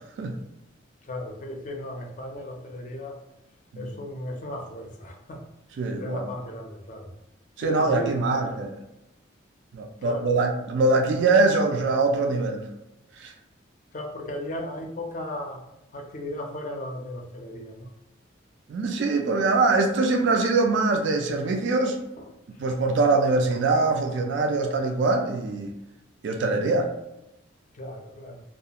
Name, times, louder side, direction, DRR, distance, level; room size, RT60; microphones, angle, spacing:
voice 1, 1.0-3.2 3.8-5.5 5.9-7.1 7.6-8.6 10.0-10.4 13.9-15.6 15.9-17.9 22.2-22.3 27.7-28.4, left 1 dB, 40° left, 2 dB, 0.4 m, -36 dB
voice 2, 5.8-6.3 7.6-8.7 9.7-12.7 13.2-13.3 18.7-22.0 22.6-25.7 26.2-26.9, right 3 dB, 70° right, 4 dB, 0.3 m, -23 dB
2.3 x 2.3 x 2.8 m, 0.90 s
head